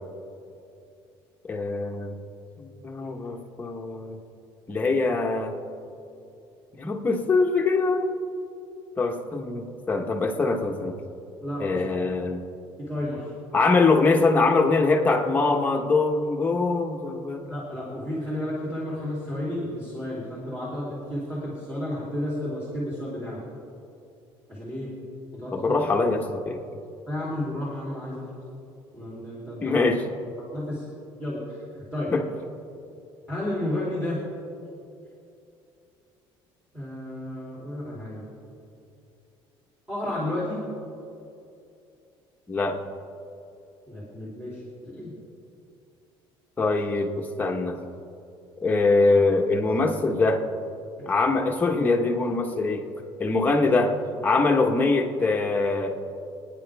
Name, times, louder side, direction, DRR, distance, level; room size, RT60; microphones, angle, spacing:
voice 1, 1.5-2.2 2.6-4.2 4.7-5.6 6.8-8.1 9.0-11.0 11.6-12.4 13.5-17.4 25.5-26.6 29.6-30.1 32.1-32.2 42.5-42.8 46.6-47.8 48.6-50.4 51.1-52.8 53.2-54.0 54.2-55.9, left 3 dB, 15° left, 1 dB, 1.3 m, -23 dB
voice 2, 11.4-11.8 12.9-13.3 17.4-23.4 24.5-24.9 25.3-25.7 27.1-28.2 28.9-29.8 30.5-30.8 31.2-32.1 33.3-34.2 36.7-38.3 39.9-40.6 43.9-45.1, left 1 dB, 10° right, -8 dB, 3.2 m, -32 dB
27.5 x 9.9 x 3.5 m, 2.7 s
cardioid pair, 165°, 10 cm